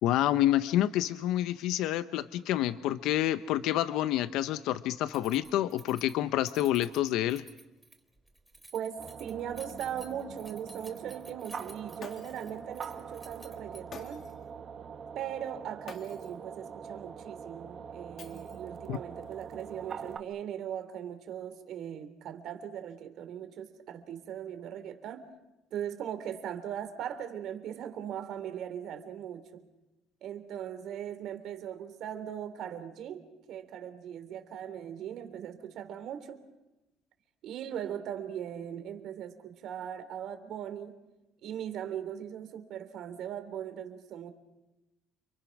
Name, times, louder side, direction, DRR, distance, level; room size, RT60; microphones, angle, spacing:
voice 1, 0.0-7.4 18.9-19.0, left 13 dB, 80° left, 12 dB, 0.9 m, -28 dB
Keys jangling, 5.1-14.1, right 1 dB, 10° right, 3.3 m, -53 dB
voice 2, 8.7-14.3 15.2-25.2 25.7-29.6 30.2-36.4 37.4-41.0 41.4-44.3, right 9 dB, 65° right, 8 dB, 3.6 m, -39 dB
sound 1, 9.0-20.2, right 6 dB, 45° right, 2.0 m, -44 dB
Shatter, 12.0-12.6 13.9-14.5 15.9-16.4 18.2-18.8, left 6 dB, 50° left, 3.1 m, -49 dB
29.5 x 24.5 x 6.1 m, 1.0 s
cardioid pair, 100°, 0 cm